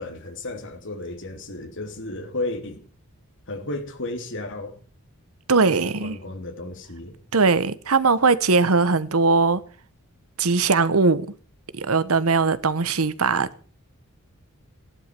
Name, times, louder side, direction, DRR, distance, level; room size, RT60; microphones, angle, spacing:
voice 1, 0.0-2.8 3.5-4.8 5.6-7.2, left 2 dB, 60° left, 3.4 m, -33 dB
voice 2, 5.5-6.1 7.3-9.6 10.4-11.3 11.8-13.5, right 4 dB, 75° right, 1.1 m, -20 dB
16.5 x 11.5 x 6.8 m
head